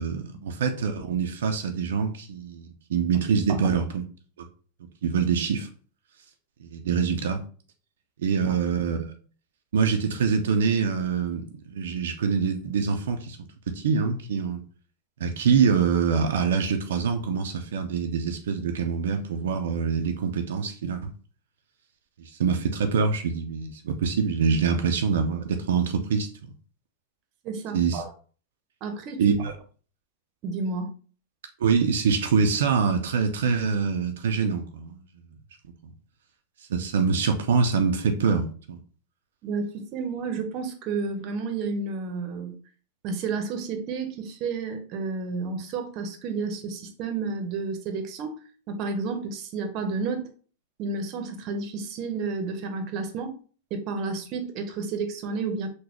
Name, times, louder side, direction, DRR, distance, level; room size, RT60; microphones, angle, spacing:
voice 1, 0.0-4.0 4.4-4.5 5.0-5.7 6.6-7.4 8.2-9.1 9.7-13.4 13.7-14.6 15.2-21.1 22.2-26.3 27.7-28.0 29.2-29.5 31.6-35.3 35.8-35.9 36.7-38.8, right 6 dB, 80° right, 0.4 m, -25 dB
voice 2, 27.4-28.1 28.8-29.4 30.4-30.9 39.4-42.6 43.0-48.4 48.7-50.3 50.8-53.4 53.7-55.7, right 4 dB, 45° right, 0.7 m, -31 dB
3.9 x 2.2 x 2.9 m
hypercardioid pair, 115°, 0 cm